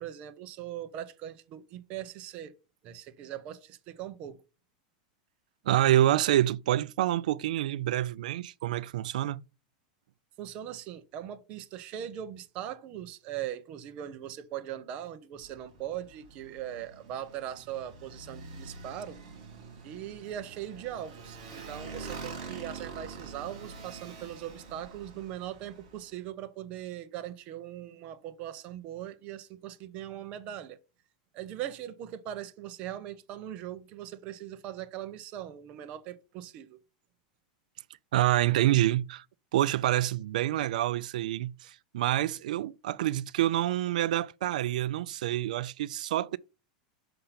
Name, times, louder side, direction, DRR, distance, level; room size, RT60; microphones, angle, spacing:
voice 1, 0.0-2.5 2.8-4.4 10.4-19.2 19.8-30.8 31.3-36.8, right 11 dB, 30° right, 0.6 m, -40 dB
voice 2, 5.7-9.4 38.1-39.2 39.5-46.4, right 13 dB, 75° right, 0.4 m, -27 dB
Motorcycle, 15.4-26.1, right 4 dB, 55° right, 3.4 m, -45 dB
5.7 x 5.2 x 5.7 m
supercardioid pair, 180°, 4 cm